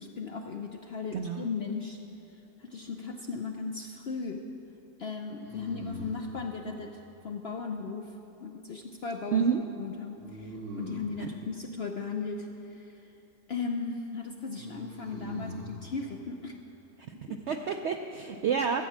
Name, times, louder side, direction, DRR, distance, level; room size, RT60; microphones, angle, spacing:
voice 1, 0.0-2.0 2.6-4.4 5.0-8.1 8.4-9.5 9.8-12.9 13.5-16.6 17.3-17.4, left 4 dB, 60° left, 3 dB, 0.6 m, -36 dB
voice 2, 1.1-1.4 9.3-9.6 17.5-18.8, right 7 dB, 70° right, 5 dB, 0.6 m, -28 dB
sound 1, 2.7-3.4 5.4-6.4 10.2-11.2 14.5-15.8, right 1 dB, 50° right, 2.0 m, -42 dB
13.5 x 8.4 x 7.3 m, 2.9 s
omnidirectional pair, 1.7 m